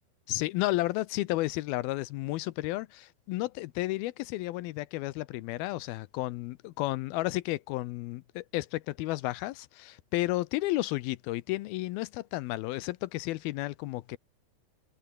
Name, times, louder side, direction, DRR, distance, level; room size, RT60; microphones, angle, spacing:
voice 1, 0.3-14.2, left 18 dB, 80° left, 2.5 m, -32 dB
omnidirectional pair, 4.4 m